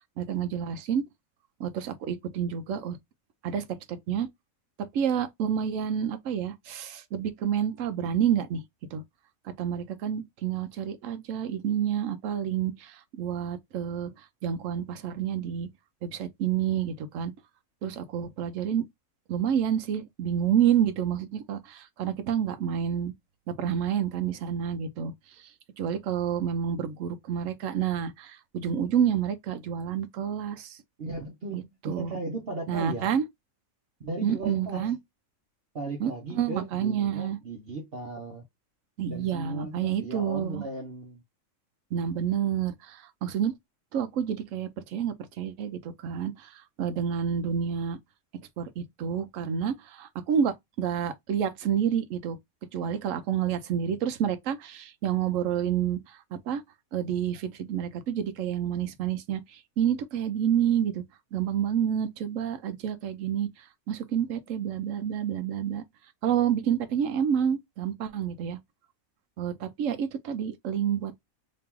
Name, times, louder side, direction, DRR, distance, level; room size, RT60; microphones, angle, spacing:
voice 1, 0.2-1.0 1.6-3.0 3.4-4.3 4.9-8.6 8.9-9.0 9.4-15.7 16.0-17.3 17.8-18.9 19.3-23.1 23.5-25.5 25.8-30.8 31.5-32.1 32.7-33.2 34.2-35.0 36.0-37.4 39.0-40.6 41.9-43.5 43.9-48.0 48.6-52.4 52.7-56.6 56.9-61.0 61.3-65.8 66.2-68.6 69.4-71.1, right 8 dB, 75° right, 1.0 m, -29 dB
voice 2, 31.0-33.1 34.0-34.9 35.7-38.4 39.1-41.2, right 2 dB, 50° right, 1.0 m, -36 dB
2.9 x 2.9 x 3.6 m
omnidirectional pair, 1.4 m